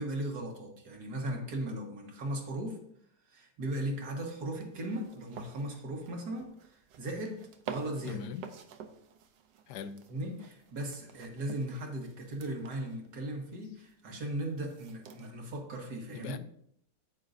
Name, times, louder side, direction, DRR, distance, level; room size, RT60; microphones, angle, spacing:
voice 1, 0.0-2.8 3.3-8.2 10.1-16.4, right 1 dB, 65° right, 2.0 m, -37 dB
sound 1, 4.3-15.6, right 7 dB, 90° right, 1.4 m, -49 dB
voice 2, 8.0-8.5 9.7-10.1 16.1-16.4, left 7 dB, 80° left, 1.2 m, -41 dB
9.1 x 9.1 x 2.6 m
omnidirectional pair, 1.8 m